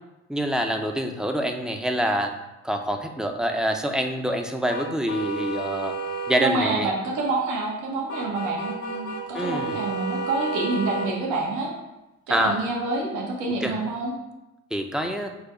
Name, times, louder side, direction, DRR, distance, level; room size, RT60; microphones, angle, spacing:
voice 1, 0.3-2.3 2.6-5.9 6.3-6.9 9.3-9.8 12.3-12.6 13.6-13.7 14.7-15.3, equal, ahead, 4 dB, 0.4 m, -26 dB
sound 1, 4.7-6.4 8.1-11.1, right 3 dB, 75° left, 0.7 m, -31 dB
voice 2, 6.4-11.7 12.3-14.1, right 3 dB, 80° right, -2 dB, 0.9 m, -27 dB
4.8 x 2.2 x 4.8 m, 0.99 s
cardioid pair, 90°, 30 cm